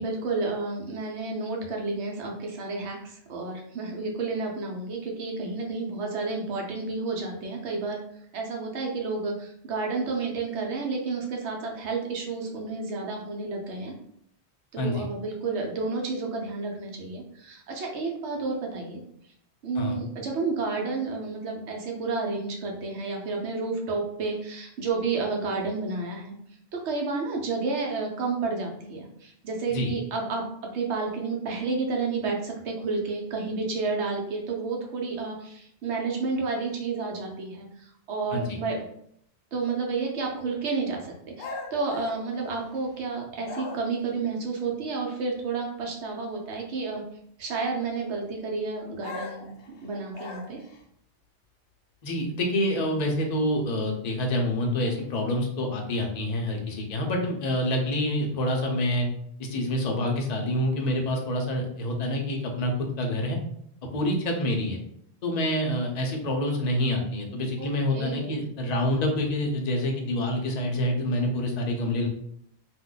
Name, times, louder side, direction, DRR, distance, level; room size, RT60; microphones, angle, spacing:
voice 1, 0.0-13.9 14.7-19.0 19.6-26.3 26.7-38.9 39.5-47.0 47.4-49.5 49.8-50.6 67.6-67.7 67.9-68.3, right 4 dB, 80° right, 0 dB, 1.0 m, -31 dB
sound 1, 41.4-43.0 43.4-44.1 49.0-50.8, left 3 dB, 85° left, 0.9 m, -40 dB
voice 2, 52.0-59.1 59.4-63.4 63.9-64.8 65.2-72.1, left 1 dB, 45° left, 1 dB, 0.6 m, -27 dB
2.5 x 2.2 x 3.7 m, 0.70 s
omnidirectional pair, 1.1 m